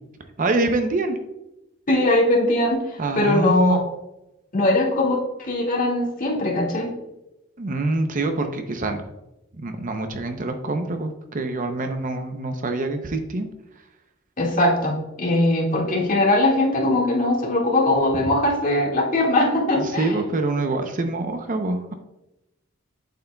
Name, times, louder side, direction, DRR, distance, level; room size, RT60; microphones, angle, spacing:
voice 1, 0.4-1.2 3.0-3.8 7.6-9.0 9.6-13.5 19.7-21.9, right 2 dB, 45° right, 6 dB, 0.6 m, -25 dB
voice 2, 1.9-3.8 4.5-6.9 14.4-20.2, left 1 dB, 45° left, -3 dB, 1.9 m, -21 dB
8.2 x 7.6 x 2.3 m, 0.92 s
head